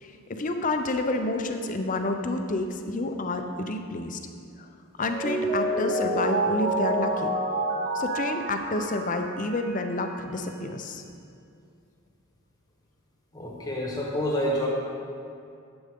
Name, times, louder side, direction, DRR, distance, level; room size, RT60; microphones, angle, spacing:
voice 1, 0.0-4.2 4.6-4.7 5.0-7.3 7.9-11.0, left 2 dB, 35° left, 5 dB, 0.6 m, -29 dB
Mallet percussion, 5.0-9.9, right 1 dB, 40° right, 1.5 m, -28 dB
voice 2, 13.3-14.7, equal, 15° left, -2 dB, 1.2 m, -28 dB
10.0 x 7.9 x 3.6 m, 2.5 s
head